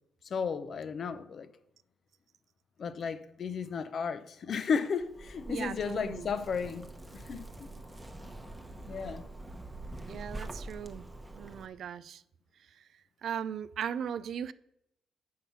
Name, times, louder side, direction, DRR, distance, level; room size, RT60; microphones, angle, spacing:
voice 1, 0.2-1.5 2.8-6.9 7.1-8.5 8.9-9.3, left 6 dB, 50° left, 0.6 m, -34 dB
Zipper (clothing), 5.0-11.7, right 2 dB, 15° right, 0.9 m, -45 dB
voice 2, 5.5-6.3 10.1-11.0 11.4-12.2 13.2-14.5, right 8 dB, 65° right, 0.3 m, -37 dB
7.5 x 5.6 x 5.6 m
cardioid pair, 90°, 0 cm